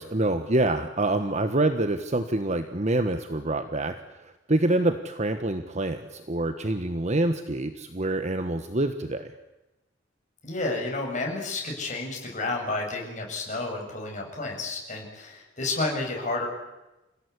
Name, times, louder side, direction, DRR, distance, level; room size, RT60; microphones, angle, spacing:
voice 1, 0.0-3.9 4.2-9.3, right 2 dB, 35° right, 8 dB, 1.4 m, -26 dB
voice 2, 10.4-16.5, left 2 dB, 40° left, 1 dB, 7.9 m, -31 dB
28.5 x 17.5 x 9.8 m, 1.0 s
head